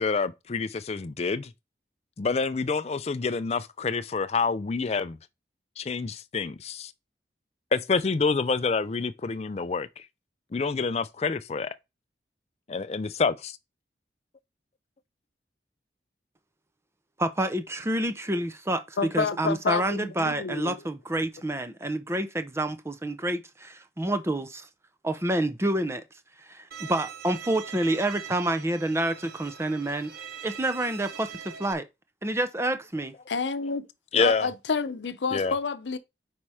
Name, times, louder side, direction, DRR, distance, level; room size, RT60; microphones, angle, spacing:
voice 1, 0.0-1.5 2.2-5.2 5.8-6.9 7.7-10.1 10.5-11.7 12.7-13.6 34.1-34.5 35.3-35.5, left 4 dB, 35° left, 0.4 m, -27 dB
voice 2, 17.2-24.7 25.0-26.0 26.5-30.1 30.4-31.3 31.6-31.8 32.2-33.1, right 1 dB, 15° right, 0.6 m, -28 dB
voice 3, 19.0-20.8 33.3-33.9 34.2-36.0, left 5 dB, 90° left, 0.7 m, -29 dB
Bowed string instrument, 26.7-31.7, right 8 dB, 60° right, 0.8 m, -42 dB
5.6 x 4.4 x 4.8 m
head